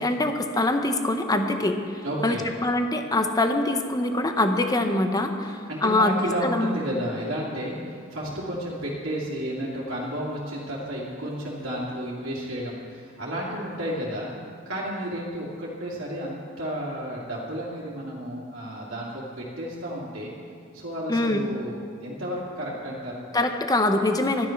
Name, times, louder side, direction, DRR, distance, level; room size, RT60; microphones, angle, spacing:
voice 1, 0.0-1.8 2.2-2.4 2.6-6.8 21.1-21.4 23.3-24.5, left 2 dB, 20° left, 6 dB, 0.9 m, -24 dB
voice 2, 2.0-2.5 5.7-14.3 14.7-20.4 20.7-23.3, equal, 80° right, -6 dB, 2.5 m, -32 dB
12.0 x 11.0 x 5.9 m, 2.2 s
head